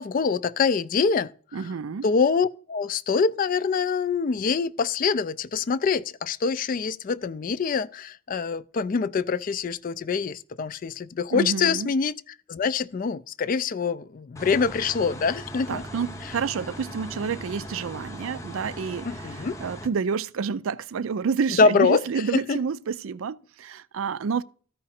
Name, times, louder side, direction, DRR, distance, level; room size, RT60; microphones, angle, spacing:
voice 1, 0.0-1.7 2.0-12.1 12.5-15.8 16.2-16.3 19.0-19.6 21.6-22.0 22.3-22.6, left 5 dB, 40° left, 0.3 m, -25 dB
voice 2, 1.5-2.0 11.3-11.9 15.7-24.4, right 6 dB, 75° right, 0.4 m, -29 dB
sound 1, 14.3-19.9, equal, 15° left, 0.7 m, -39 dB
13.5 x 5.0 x 4.2 m
head